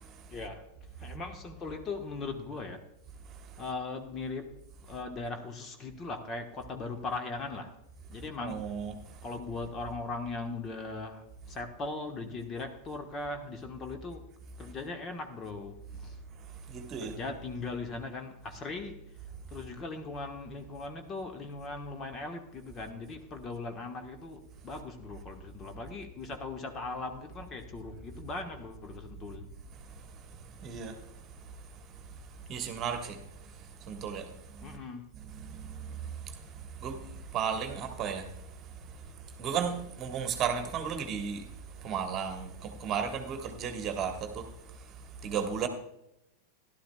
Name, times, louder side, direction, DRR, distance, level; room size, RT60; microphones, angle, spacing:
voice 1, 0.3-0.7 1.0-2.8 3.6-4.5 4.9-7.7 8.1-8.8 9.2-14.3 14.6-16.2 17.0-19.0 19.5-29.5 34.6-35.1, left 3 dB, 25° left, 1.2 m, -39 dB
voice 2, 8.4-8.9 16.7-17.2 30.6-31.0 32.5-33.2 33.9-34.3 35.3-36.0 36.2-36.3 36.8-37.0 37.3-38.3 39.4-41.4 41.8-44.5 45.2-45.7, right 7 dB, 30° right, 1.4 m, -34 dB
16.0 x 11.5 x 2.3 m
figure-of-eight pair, 90°, 0 cm